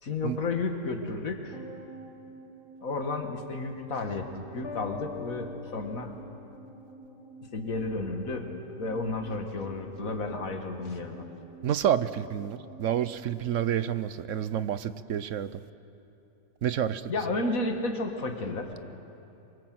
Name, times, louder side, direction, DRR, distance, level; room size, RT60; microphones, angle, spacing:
voice 1, 0.0-1.6 2.8-6.1 7.5-11.3 17.1-18.9, left 3 dB, 85° left, 4 dB, 2.3 m, -32 dB
sound 1, 1.5-14.0 14.3-14.4, right 2 dB, ahead, 7.2 m, -50 dB
sound 2, 4.6-7.5, left 6 dB, 50° left, 1.1 m, -44 dB
voice 2, 11.6-15.6 16.6-17.0, right 10 dB, 70° right, 14 dB, 1.1 m, -29 dB
25.5 x 23.5 x 7.8 m, 2.8 s
omnidirectional pair, 1.4 m